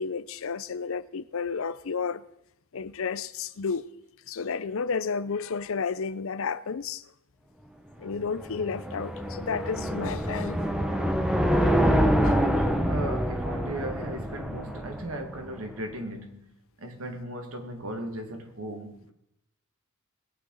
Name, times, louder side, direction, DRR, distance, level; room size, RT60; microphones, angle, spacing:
voice 1, 0.0-2.2 2.7-3.8 4.3-7.0 8.0-10.6 12.2-12.5, left 5 dB, 65° left, 0.6 m, -31 dB
sound 1, 8.1-15.4, equal, 5° right, 1.2 m, -26 dB
voice 2, 12.8-19.1, right 1 dB, 70° right, 2.0 m, -36 dB
20.0 x 9.0 x 4.0 m
head